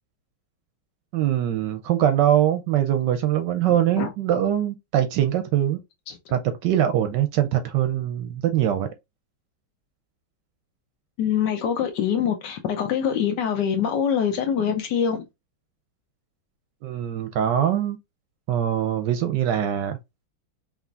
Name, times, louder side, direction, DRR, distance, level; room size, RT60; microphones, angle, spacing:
voice 1, 1.1-5.8 6.3-8.9 16.8-18.0 18.5-20.0, right 11 dB, 70° right, 1.1 m, -22 dB
voice 2, 11.2-15.2, left 8 dB, 65° left, 1.2 m, -24 dB
5.0 x 3.2 x 2.4 m
omnidirectional pair, 2.2 m